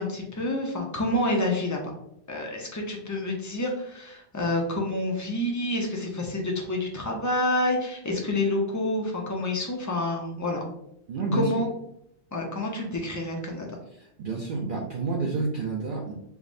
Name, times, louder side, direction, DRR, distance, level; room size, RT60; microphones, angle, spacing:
voice 1, 0.0-1.8 2.3-10.6 11.3-11.7 12.3-13.7, left 1 dB, 30° left, 0 dB, 0.3 m, -28 dB
voice 2, 11.1-11.5 14.2-16.1, right 4 dB, 60° right, -2 dB, 0.6 m, -29 dB
4.8 x 2.0 x 2.5 m, 0.75 s
omnidirectional pair, 1.1 m